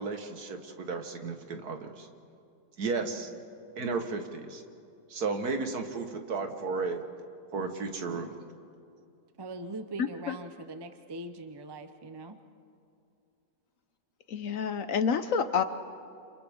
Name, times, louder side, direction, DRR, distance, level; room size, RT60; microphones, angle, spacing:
voice 1, 0.0-2.1 2.8-3.3 3.8-4.6 5.1-7.0 7.5-8.4, right 4 dB, 70° right, 6 dB, 1.9 m, -33 dB
voice 2, 9.4-12.4, right 2 dB, 25° right, 8 dB, 0.6 m, -41 dB
voice 3, 10.0-10.4 14.3-15.6, left 6 dB, 60° left, 10 dB, 1.0 m, -28 dB
29.0 x 27.5 x 3.6 m, 2.5 s
omnidirectional pair, 1.7 m